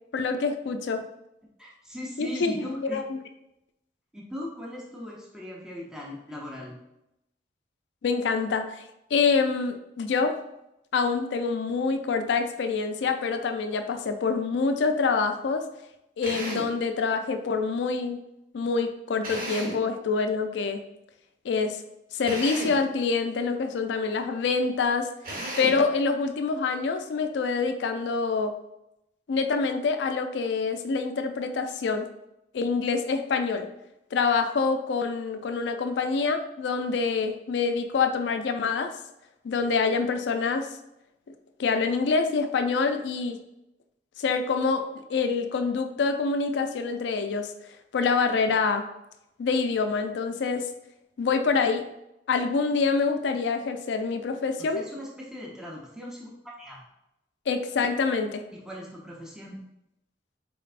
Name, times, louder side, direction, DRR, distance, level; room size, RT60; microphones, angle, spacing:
voice 1, 0.1-1.0 2.2-3.2 8.0-8.8 9.1-10.4 10.9-15.7 16.2-18.2 18.5-20.8 21.4-21.8 22.1-25.1 25.6-28.5 29.3-32.1 32.5-33.7 34.1-39.0 39.4-40.7 41.6-43.4 44.2-47.5 47.9-48.9 49.4-50.7 51.2-51.9 52.3-54.8 57.5-58.4, left 4 dB, 70° left, 7 dB, 0.4 m, -26 dB
voice 2, 1.6-3.0 4.1-6.7 54.6-56.8 58.5-59.6, left 1 dB, 5° right, -3 dB, 0.6 m, -39 dB
Drill, 16.2-16.8 19.2-19.9 22.2-22.9 25.2-25.9, right 1 dB, 50° right, 1.0 m, -34 dB
4.2 x 3.2 x 2.4 m, 0.86 s
head